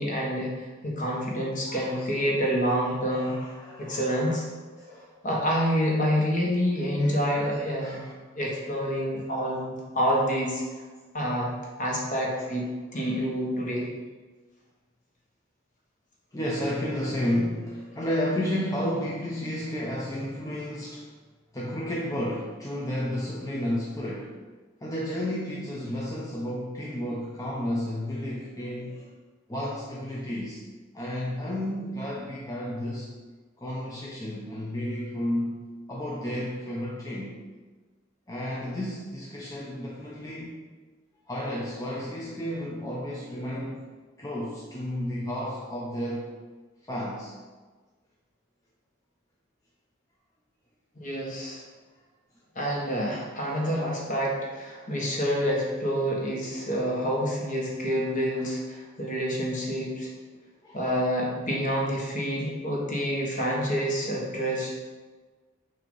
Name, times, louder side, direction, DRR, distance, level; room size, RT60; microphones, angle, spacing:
voice 1, 0.0-3.4 3.8-4.5 5.2-8.0 8.3-10.6 11.1-11.5 11.8-13.9 50.9-51.6 52.5-60.1 60.7-64.7, equal, 40° left, -3 dB, 1.3 m, -27 dB
voice 2, 1.7-2.3 2.8-4.4 4.8-5.1 7.0-7.5 7.8-8.2 9.3-9.5 12.1-12.4 12.9-13.3 16.3-21.1 21.5-24.3 24.8-29.1 29.5-30.6 30.9-33.1 33.6-37.3 38.3-40.6 41.3-43.8 44.2-46.3 46.9-47.3 58.4-58.5 60.6-60.9, left 1 dB, 15° left, -5 dB, 0.6 m, -32 dB
6.1 x 2.8 x 5.4 m, 1.4 s
head